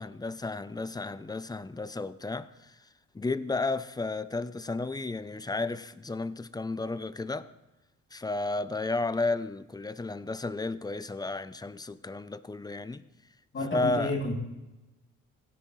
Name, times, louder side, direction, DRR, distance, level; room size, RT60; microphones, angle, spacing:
voice 1, 0.0-2.8 3.1-7.5 8.1-13.1 13.7-14.1, left 3 dB, 15° left, 0.5 m, -33 dB
voice 2, 13.5-14.3, left 2 dB, 40° left, 2.9 m, -31 dB
16.5 x 9.9 x 3.1 m
cardioid pair, 90°, 30 cm